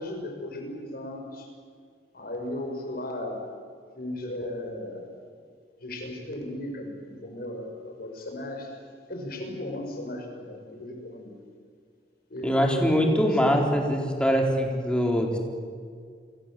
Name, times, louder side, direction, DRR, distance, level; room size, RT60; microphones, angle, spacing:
voice 1, 0.0-1.5 2.1-3.4 4.0-5.2 5.8-8.7 9.1-11.4 12.3-13.1 13.4-13.6, left 1 dB, 60° left, 3 dB, 6.1 m, -36 dB
voice 2, 12.4-15.4, equal, 5° left, 1 dB, 4.0 m, -23 dB
30.0 x 23.5 x 7.7 m, 2.1 s
head